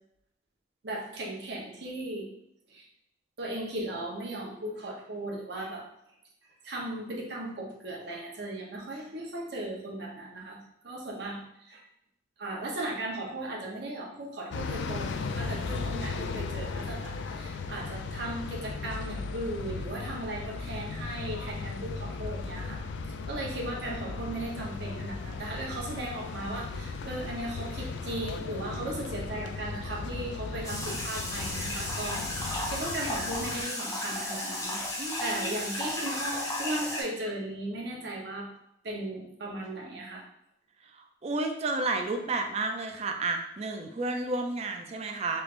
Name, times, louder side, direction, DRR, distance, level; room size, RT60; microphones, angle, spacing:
voice 1, 0.8-2.3 2.7-2.9 3.4-5.9 6.6-11.9 12.4-22.8 23.3-38.4 38.8-40.2, right 1 dB, 60° right, -1 dB, 0.8 m, -37 dB
sound 1, 14.5-33.6, left 4 dB, 70° left, 0.3 m, -36 dB
sound 2, 30.6-37.0, left 1 dB, 15° left, 0.6 m, -34 dB
voice 2, 35.0-35.6 41.0-45.4, right 2 dB, 35° right, 5 dB, 0.4 m, -31 dB
3.2 x 2.4 x 3.2 m, 0.78 s
head